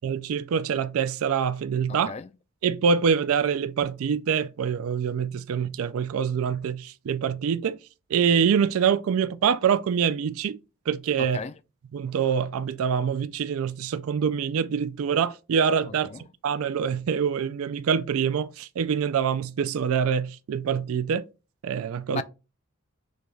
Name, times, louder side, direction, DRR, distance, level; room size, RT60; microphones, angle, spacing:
voice 1, 0.0-2.1 2.6-7.8 8.1-10.6 10.9-11.4 11.9-16.1 16.4-21.2 21.6-22.2, right 7 dB, 70° right, 0.3 m, -25 dB
voice 2, 1.9-2.3 11.2-11.5 16.1-16.2 22.1-22.2, left 4 dB, 30° left, 0.3 m, -34 dB
6.4 x 2.3 x 3.3 m
head